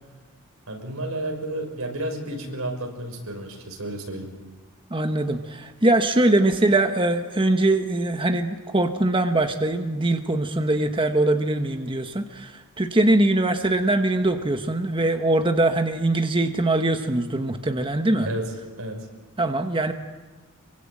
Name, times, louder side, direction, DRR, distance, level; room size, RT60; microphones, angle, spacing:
voice 1, 0.7-4.3 18.2-19.1, right 1 dB, 90° right, 3 dB, 6.4 m, -32 dB
voice 2, 4.9-18.3 19.4-19.9, right 2 dB, 25° right, 6 dB, 1.2 m, -22 dB
26.5 x 24.0 x 9.0 m, 1.2 s
head